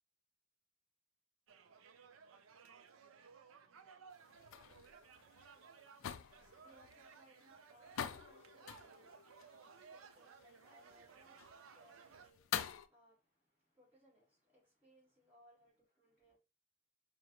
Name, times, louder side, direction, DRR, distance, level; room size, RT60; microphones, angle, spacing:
sound 1, 1.5-12.3, right 6 dB, 85° right, 0.4 m, -60 dB
sound 2, 4.1-12.9, left 9 dB, 80° left, 0.3 m, -47 dB
voice 1, 5.5-16.4, equal, 10° right, 2.1 m, -69 dB
5.0 x 2.5 x 2.9 m
head